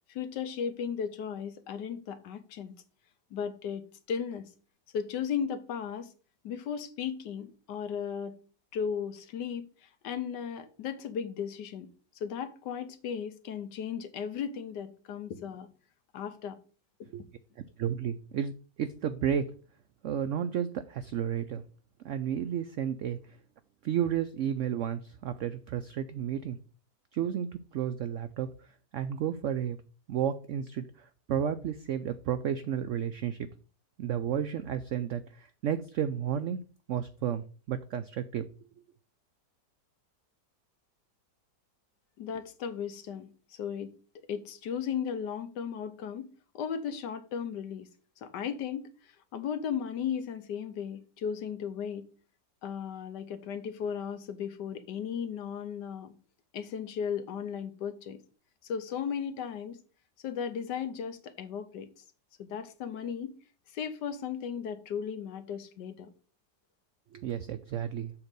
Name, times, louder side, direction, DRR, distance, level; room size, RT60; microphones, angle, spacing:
voice 1, 0.1-2.7 3.3-4.4 4.9-6.1 6.4-8.3 8.7-9.7 10.0-11.9 12.2-15.7 16.1-16.6 42.2-43.9 44.3-47.9 48.2-48.9 49.3-52.0 52.6-56.1 56.5-58.2 58.6-59.8 60.2-61.9 62.4-63.4 63.7-66.1, left 7 dB, 80° left, 1.4 m, -36 dB
voice 2, 17.8-18.5 18.8-19.5 20.0-21.6 22.0-23.4 23.8-26.6 27.1-28.5 28.9-29.8 30.1-33.5 34.0-38.5 67.1-68.1, right 9 dB, 85° right, 0.6 m, -32 dB
7.1 x 3.9 x 6.6 m
omnidirectional pair, 1.9 m